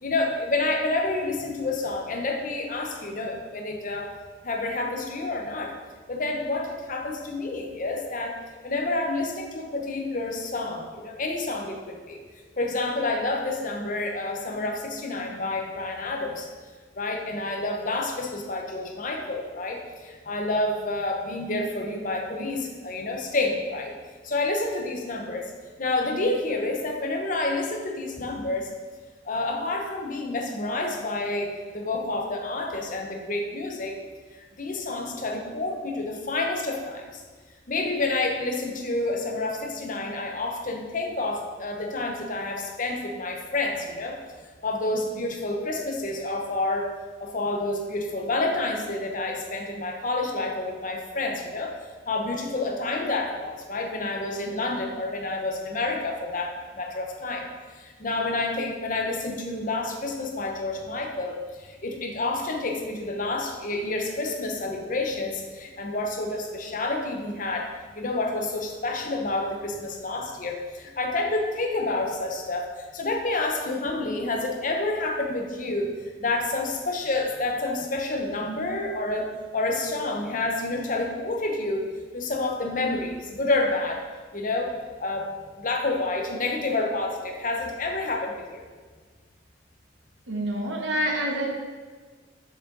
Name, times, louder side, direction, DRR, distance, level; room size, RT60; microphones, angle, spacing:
voice 1, 0.0-4.1 4.4-5.7 6.1-8.4 8.6-12.2 12.6-16.5 17.0-24.0 24.2-25.5 25.8-28.7 29.2-34.0 34.3-37.2 37.7-44.2 44.6-46.9 47.2-51.7 52.1-57.4 57.7-67.7 67.9-84.0 84.3-85.3 85.6-88.6, left 2 dB, 45° left, 2 dB, 0.8 m, -29 dB
voice 2, 90.3-91.5, equal, 75° right, 0 dB, 1.2 m, -27 dB
6.3 x 6.2 x 4.0 m, 1.5 s
head